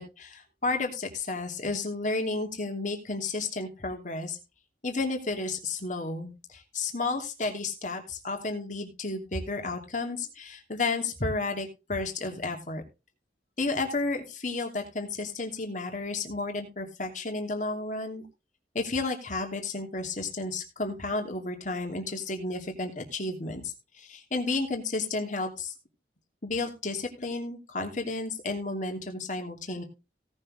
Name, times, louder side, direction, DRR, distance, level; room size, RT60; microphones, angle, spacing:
voice 1, 0.0-4.4 4.8-6.3 6.7-12.8 13.6-18.2 18.7-25.7 26.4-29.8, left 3 dB, 45° left, 4 dB, 2.9 m, -32 dB
17.5 x 6.6 x 3.7 m, 0.28 s
head